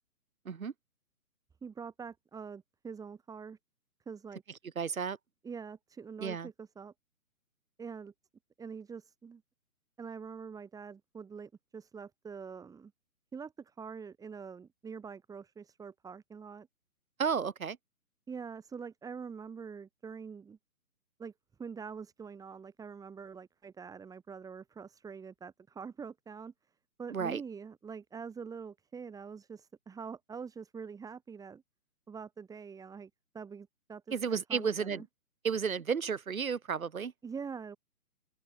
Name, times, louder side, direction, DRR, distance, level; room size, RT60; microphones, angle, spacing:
voice 1, 1.6-3.6 4.1-4.4 5.4-6.9 7.8-8.1 8.6-9.4 10.0-12.9 13.3-16.7 18.3-20.6 21.2-21.3 21.6-26.5 27.0-31.6 32.1-35.1 37.2-37.8, right 6 dB, 10° right, 5.7 m, -45 dB
voice 2, 4.8-5.2 6.2-6.5 17.2-17.8 27.1-27.4 34.1-35.0 35.4-37.1, right 6 dB, 65° right, 2.2 m, -32 dB
open air
figure-of-eight pair, 135°, 44 cm